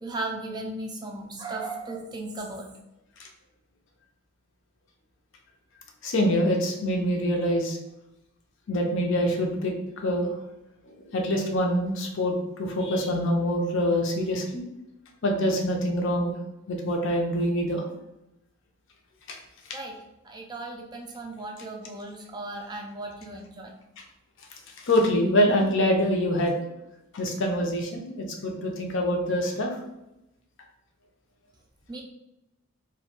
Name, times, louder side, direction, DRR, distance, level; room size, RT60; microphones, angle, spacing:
voice 1, 0.0-2.7 19.7-19.9 20.2-23.7 31.9-32.0, right 2 dB, 20° right, 1 dB, 0.3 m, -36 dB
voice 2, 6.0-7.8 8.7-9.7 10.0-10.4 10.9-14.6 15.2-16.3 16.7-17.9 19.3-19.4 24.8-26.6 27.1-29.8, equal, 65° left, 1 dB, 0.5 m, -25 dB
2.3 x 2.1 x 2.9 m, 0.89 s
head